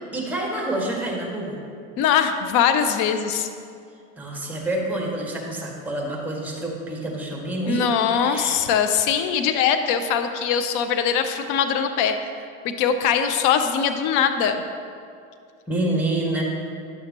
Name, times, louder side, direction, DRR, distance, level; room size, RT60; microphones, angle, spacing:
voice 1, 0.1-1.6 4.2-7.9 8.2-8.6 15.7-16.4, right 1 dB, 5° right, -2 dB, 1.7 m, -27 dB
voice 2, 2.0-3.5 7.7-12.2 12.6-14.6, left 7 dB, 50° left, 8 dB, 0.7 m, -21 dB
10.5 x 6.5 x 3.0 m, 2.3 s
hypercardioid pair, 80°, 40 cm